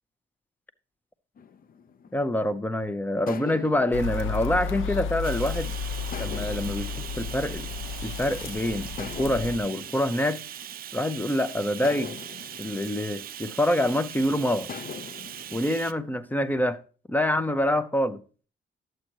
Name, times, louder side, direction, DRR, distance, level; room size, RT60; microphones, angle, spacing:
sound 1, 1.4-2.7 3.3-5.5 6.1-8.3 9.0-11.2 11.8-14.1 14.7-16.3, left 7 dB, 45° left, 0.7 m, -43 dB
voice 1, 2.1-5.7 6.2-7.7 8.0-10.4 10.9-12.1 12.6-14.7 15.5-16.8 17.1-18.2, left 1 dB, 10° left, 0.7 m, -26 dB
sound 2, 3.9-9.6, left 5 dB, 80° left, 0.9 m, -33 dB
Bathtub (filling or washing), 5.2-15.9, right 11 dB, 50° right, 0.4 m, -40 dB
11.5 x 7.7 x 3.0 m
cardioid pair, 90°, 20 cm